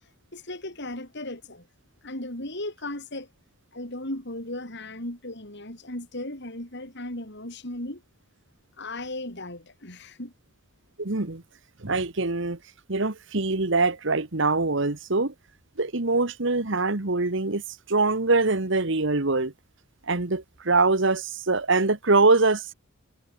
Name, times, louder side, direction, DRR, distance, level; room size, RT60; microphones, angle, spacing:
voice 1, 0.3-1.6 2.0-3.3 3.7-8.0 8.8-10.3, left 1 dB, 55° left, 7.1 m, -36 dB
voice 2, 11.0-11.4 11.8-12.6 12.9-15.3 15.8-17.6 17.9-19.5 20.1-22.7, right 3 dB, 65° right, 1.6 m, -23 dB
head